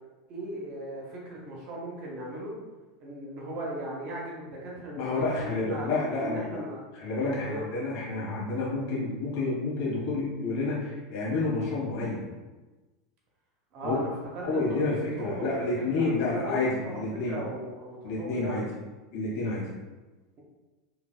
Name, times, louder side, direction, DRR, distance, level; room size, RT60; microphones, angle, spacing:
voice 1, 0.3-2.6 3.0-5.9 6.2-6.8 7.2-7.6 13.7-18.7, right 1 dB, 40° right, -3 dB, 0.7 m, -37 dB
voice 2, 5.0-6.6 7.0-12.3 13.8-14.0 14.4-17.4 18.0-18.6 19.1-19.6, left 3 dB, 50° left, -7 dB, 1.4 m, -29 dB
3.1 x 2.7 x 2.2 m, 1.2 s
figure-of-eight pair, 80°, 3 cm